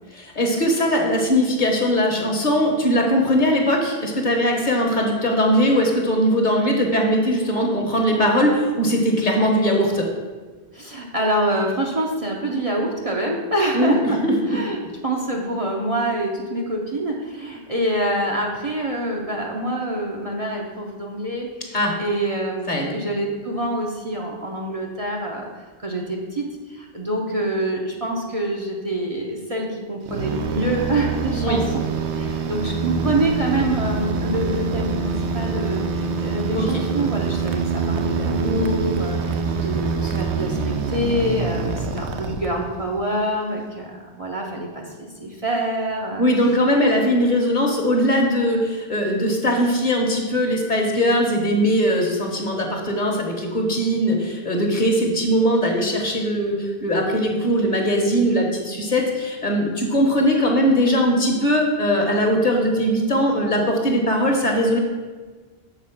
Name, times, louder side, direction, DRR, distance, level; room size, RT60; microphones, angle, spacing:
voice 1, 0.1-10.0 13.7-14.3 21.7-21.9 22.7-22.9 31.4-31.6 36.5-36.7 46.2-64.8, equal, 45° left, 1 dB, 1.3 m, -20 dB
voice 2, 10.7-14.2 14.5-25.5 25.8-31.6 32.1-46.2, right 1 dB, 35° right, -1 dB, 0.8 m, -26 dB
sound 1, 30.1-42.9, right 4 dB, 80° right, 1.0 m, -25 dB
7.0 x 4.3 x 5.8 m, 1.4 s
omnidirectional pair, 1.1 m